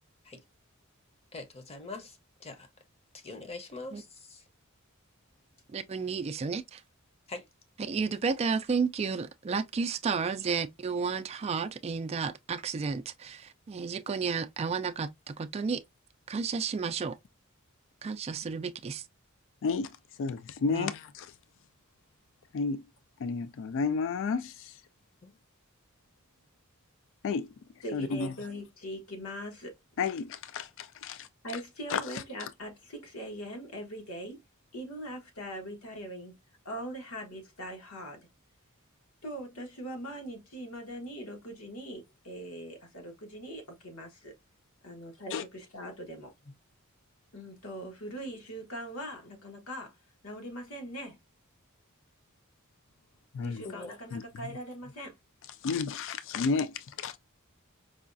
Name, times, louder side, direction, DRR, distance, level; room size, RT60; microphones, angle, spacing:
voice 1, 1.3-2.7 3.1-4.4 7.3-7.5 25.2-25.4 53.6-53.9, left 3 dB, 30° left, 0.7 m, -43 dB
voice 2, 5.7-6.8 7.8-15.8 16.3-17.2 18.0-19.0 20.7-20.9, right 5 dB, 30° right, 0.3 m, -32 dB
voice 3, 19.6-21.3 22.5-22.8 23.2-24.8 27.2-27.5 27.9-28.3 30.0-31.3 31.9-32.5 45.3-45.4 53.3-53.6 54.1-54.2 55.6-57.2, left 5 dB, 60° left, 0.3 m, -32 dB
voice 4, 27.8-29.8 31.4-34.4 34.7-36.3 36.6-38.2 39.2-44.3 44.8-46.3 47.3-49.9 50.2-51.2 53.4-55.1, equal, 90° left, 1.4 m, -41 dB
4.8 x 2.3 x 2.5 m
head